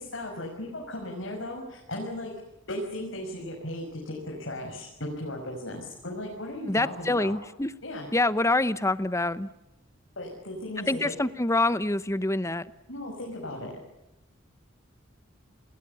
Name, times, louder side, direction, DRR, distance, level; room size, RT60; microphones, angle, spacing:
voice 1, 0.0-2.3 2.7-7.4 7.8-8.1 10.2-11.1 12.9-13.7, left 1 dB, 65° left, -1 dB, 6.2 m, -36 dB
voice 2, 6.7-7.7 8.1-9.5 10.9-12.6, left 2 dB, 15° left, 15 dB, 0.9 m, -26 dB
29.5 x 21.0 x 7.0 m, 0.91 s
head